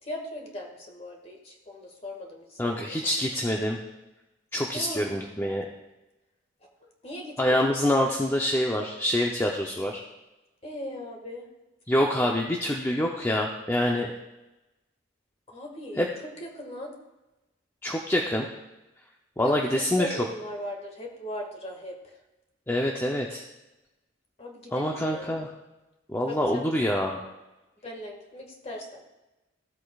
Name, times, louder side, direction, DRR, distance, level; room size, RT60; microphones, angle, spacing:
voice 1, 0.0-3.1 4.7-5.3 7.0-7.7 10.6-11.5 15.5-16.9 19.4-22.1 24.4-25.4 26.3-26.7 27.8-29.0, left 1 dB, 30° left, 1 dB, 1.7 m, -39 dB
voice 2, 2.6-3.8 4.5-5.7 7.4-10.0 11.9-14.1 16.0-16.1 17.8-18.5 19.4-20.2 22.7-23.4 24.7-25.5 26.1-27.2, left 1 dB, 10° left, 0 dB, 0.6 m, -26 dB
15.5 x 8.1 x 2.4 m, 1.0 s
head